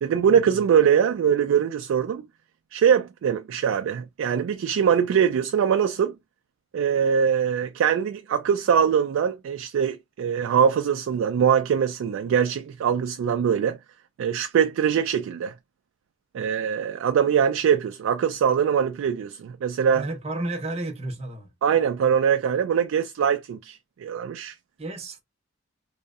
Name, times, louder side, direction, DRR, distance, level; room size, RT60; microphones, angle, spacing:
voice 1, 0.0-2.2 2.7-6.1 6.7-13.8 14.2-15.5 16.3-20.1 21.6-24.5, right 7 dB, 85° right, 0.3 m, -22 dB
voice 2, 19.9-21.5 24.8-25.2, right 2 dB, 30° right, 0.5 m, -32 dB
2.7 x 2.1 x 2.3 m
head